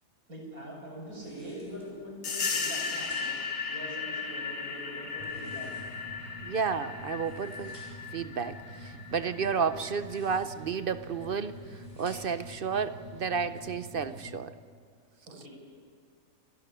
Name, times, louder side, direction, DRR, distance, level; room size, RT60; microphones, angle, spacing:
voice 1, 0.3-3.3 3.7-5.7 15.3-15.5, equal, 80° right, -2 dB, 7.6 m, -43 dB
sound 1, 1.1-2.0 2.5-3.5 5.1-6.2 7.0-8.1 9.8-10.7 11.3-12.5, equal, 25° right, 6.9 m, -57 dB
sound 2, 2.2-10.5, left 5 dB, 85° left, 2.2 m, -36 dB
sound 3, 5.2-14.3, equal, 25° left, 5.1 m, -46 dB
voice 2, 6.4-7.8 8.1-14.5, right 6 dB, 55° right, 12 dB, 0.7 m, -32 dB
29.0 x 12.0 x 9.9 m, 2.1 s
omnidirectional pair, 1.5 m